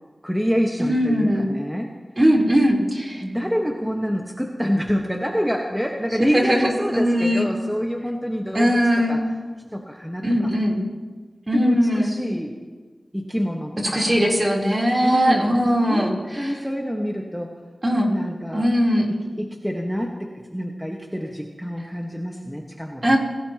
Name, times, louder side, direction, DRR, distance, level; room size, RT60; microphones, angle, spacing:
voice 1, 0.2-1.9 3.2-8.8 9.1-9.2 9.7-10.5 11.5-12.6 13.1-14.2 15.0-15.5 15.9-16.1 16.4-17.5 18.1-18.7 19.1-23.2, equal, ahead, 0 dB, 1.4 m, -27 dB
voice 2, 0.8-1.5 2.2-3.2 6.2-7.5 8.5-9.2 10.2-10.7 11.5-12.1 13.9-16.5 17.8-18.1 18.5-19.1 23.0-23.2, equal, 30° right, -2 dB, 3.7 m, -20 dB
26.5 x 18.0 x 3.0 m, 1.4 s
wide cardioid pair, 80°, 0 cm